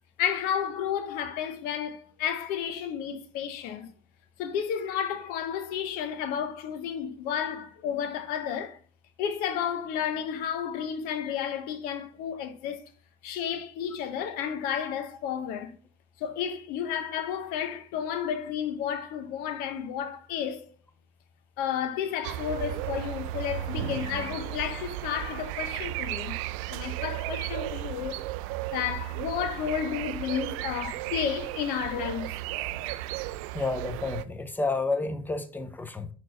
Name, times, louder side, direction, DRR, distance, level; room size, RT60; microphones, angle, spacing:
voice 1, 0.2-3.9 4.4-8.8 9.2-12.8 13.2-15.8 16.2-20.7 21.6-26.4 26.7-28.2 28.7-32.4, left 8 dB, 60° left, 1.0 m, -32 dB
sound 1, 22.2-34.2, right 15 dB, 70° right, 0.5 m, -34 dB
voice 2, 33.5-36.1, left 3 dB, 10° left, 1.0 m, -30 dB
6.3 x 4.5 x 3.9 m
supercardioid pair, 95°, 18 cm